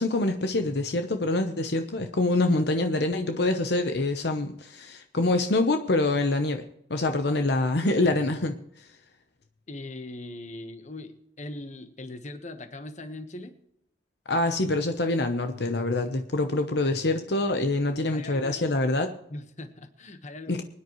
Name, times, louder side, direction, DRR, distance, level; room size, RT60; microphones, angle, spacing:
voice 1, 0.0-6.6 6.9-8.6 14.3-19.1 20.5-20.6, left 2 dB, 70° left, 6 dB, 0.9 m, -25 dB
voice 2, 9.7-13.6 18.1-18.6 19.3-20.6, left 2 dB, 45° left, 8 dB, 1.3 m, -40 dB
24.5 x 9.8 x 3.1 m, 0.75 s
head